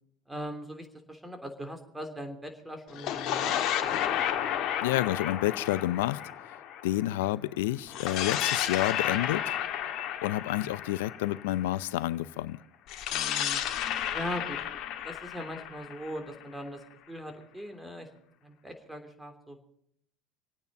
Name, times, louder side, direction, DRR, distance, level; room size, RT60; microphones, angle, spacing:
voice 1, 0.3-4.2 10.6-10.7 13.1-13.6 14.1-14.6 15.0-18.1 18.4-19.6, equal, 10° right, 7 dB, 3.2 m, -40 dB
sound 1, 2.9-7.3 7.9-11.8 12.9-16.7, left 10 dB, 60° left, 1.7 m, -32 dB
voice 2, 4.8-6.2 6.8-9.5 10.2-12.6, left 15 dB, 80° left, 17 dB, 0.6 m, -29 dB
27.5 x 9.2 x 5.4 m, 0.68 s
hypercardioid pair, 80°, 0 cm